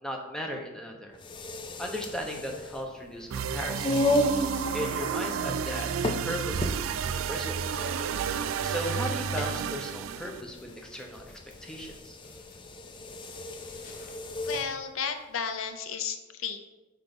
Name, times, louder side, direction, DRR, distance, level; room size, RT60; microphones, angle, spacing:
voice 1, 0.0-1.2 1.8-3.9 4.7-5.9 6.2-8.0 8.6-11.2 11.6-12.2, equal, 5° left, 1 dB, 0.8 m, -36 dB
sound 1, 1.1-14.7, left 1 dB, 25° left, 0.4 m, -34 dB
sound 2, 3.3-10.4, right 7 dB, 85° right, 0.3 m, -31 dB
sound 3, 3.7-15.8, left 1 dB, 40° left, 0.9 m, -51 dB
voice 2, 14.4-16.6, left 6 dB, 85° left, 8 dB, 0.6 m, -33 dB
5.9 x 4.5 x 5.3 m, 1.1 s
head